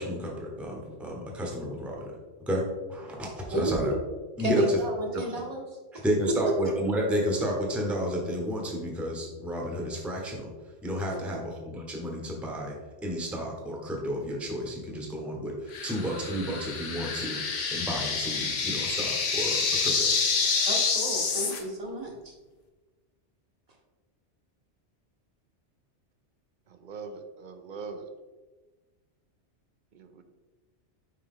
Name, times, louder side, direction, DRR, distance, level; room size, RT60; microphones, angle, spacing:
voice 1, 0.0-2.1 2.5-3.9 4.4-4.8 5.1-5.2 6.0-10.5 10.8-12.7 13.0-17.4 17.7-20.1, equal, ahead, -1 dB, 0.9 m, -31 dB
voice 2, 3.5-4.0 4.4-5.6 11.3-11.4 20.6-22.3, right 1 dB, 35° right, 0 dB, 1.0 m, -31 dB
sound 1, 15.7-21.6, left 5 dB, 90° left, 1.2 m, -28 dB
voice 3, 26.7-28.1 29.9-30.2, right 4 dB, 55° right, 8 dB, 0.6 m, -41 dB
5.7 x 4.7 x 3.6 m, 1.2 s
omnidirectional pair, 1.2 m